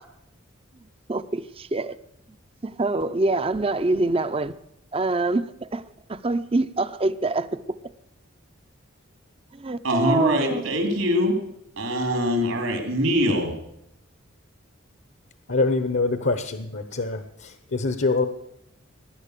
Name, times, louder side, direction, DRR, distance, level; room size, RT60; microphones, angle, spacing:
voice 1, 1.1-2.0 2.6-4.5 4.9-5.8 6.1-7.5 9.5-10.6, right 2 dB, 25° right, 13 dB, 0.5 m, -25 dB
voice 2, 9.8-11.3 11.8-13.5, equal, 80° right, 4 dB, 3.6 m, -23 dB
voice 3, 15.5-18.3, left 3 dB, 60° left, 9 dB, 1.0 m, -25 dB
18.5 x 11.0 x 6.7 m, 0.82 s
head